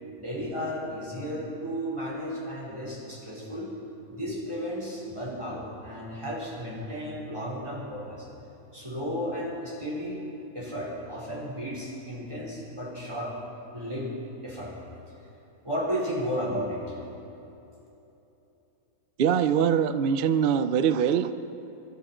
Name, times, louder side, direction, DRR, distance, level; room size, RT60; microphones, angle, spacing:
voice 1, 0.2-3.7 4.1-8.3 8.7-10.2 10.5-13.3 13.7-14.1 14.4-14.7 15.6-17.0, equal, 15° right, -6 dB, 4.6 m, -33 dB
voice 2, 19.2-21.4, right 8 dB, 80° right, 10 dB, 0.4 m, -23 dB
26.5 x 12.5 x 4.4 m, 3.0 s
omnidirectional pair, 1.7 m